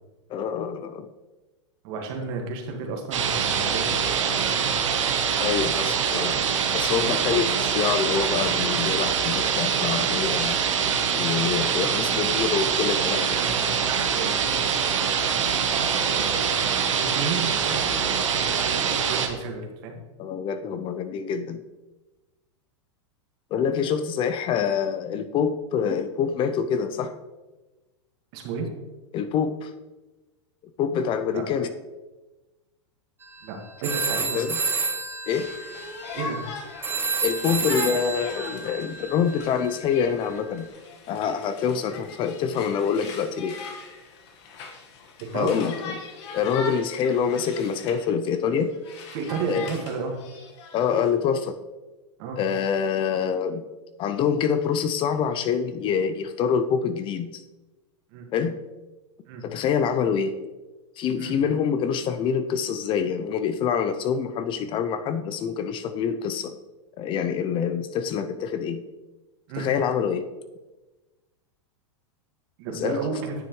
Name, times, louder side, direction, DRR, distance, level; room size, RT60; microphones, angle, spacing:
voice 1, 0.3-1.1 5.4-6.4 6.7-10.6 11.1-13.4 20.2-21.6 23.5-27.2 29.1-29.7 30.8-31.7 34.3-34.6 35.3-35.5 37.2-40.7 41.1-43.6 45.3-46.0 46.3-48.7 49.5-49.8 50.7-51.6 52.4-53.7 54.0-57.4 58.3-58.6 59.4-60.4 61.0-66.6 67.0-68.9 69.6-70.3 72.7-73.0, left 7 dB, 35° left, 10 dB, 0.5 m, -26 dB
voice 2, 1.8-4.2 4.5-4.7 13.3-18.5 18.7-20.0 28.3-28.7 31.3-31.4 33.4-34.4 36.1-36.5 45.2-45.5 49.1-50.2 52.2-52.4 58.1-58.3 59.2-59.4 61.2-61.4 69.5-69.7 72.6-73.3, right 4 dB, 55° right, 2 dB, 1.8 m, -33 dB
sound 1, 3.1-19.3, right 7 dB, 90° right, 1.0 m, -24 dB
sound 2, 33.2-33.5 33.8-40.5, right 4 dB, 15° right, 0.7 m, -30 dB
Conversation, 35.3-48.1 48.4-51.1, left 4 dB, 65° left, 1.5 m, -40 dB
9.7 x 6.7 x 3.1 m, 1.1 s
hypercardioid pair, 120°, 16 cm